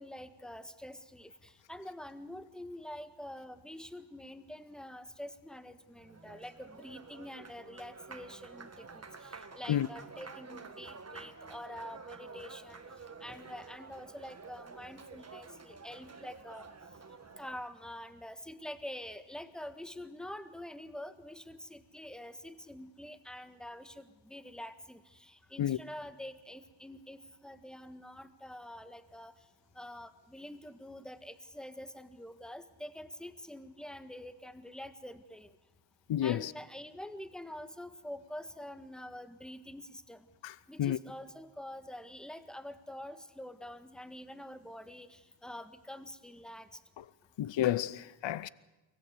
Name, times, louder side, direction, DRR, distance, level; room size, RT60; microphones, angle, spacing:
voice 1, 0.0-12.8 13.2-16.7 17.4-29.3 29.7-35.6 36.2-40.3 40.7-46.8, left 1 dB, ahead, 1.6 m, -46 dB
Applause, 5.8-17.7, right 4 dB, 35° right, 1.6 m, -50 dB
voice 2, 36.1-36.5 40.4-40.5 40.8-41.0 47.4-48.5, left 11 dB, 75° left, 0.7 m, -30 dB
24.0 x 19.0 x 8.1 m
cardioid pair, 80°, 45 cm